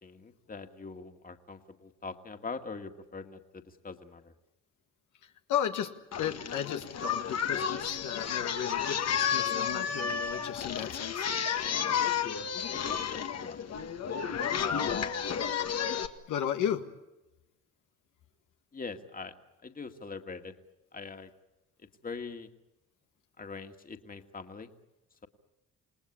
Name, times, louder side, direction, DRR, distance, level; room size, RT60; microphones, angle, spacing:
voice 1, 0.0-4.3 12.9-13.7 14.6-15.6 18.7-19.3 19.6-20.5 20.9-21.3 21.8-22.5 23.4-24.7, left 4 dB, 30° left, 5 dB, 2.2 m, -42 dB
voice 2, 5.5-5.9 6.2-11.3 14.7-15.1 16.3-16.8, left 9 dB, 80° left, 5 dB, 1.8 m, -34 dB
Singing, 6.1-16.1, left 7 dB, 55° left, 1.8 m, -32 dB
28.5 x 19.0 x 8.6 m, 0.97 s
cardioid pair, 90°, 30 cm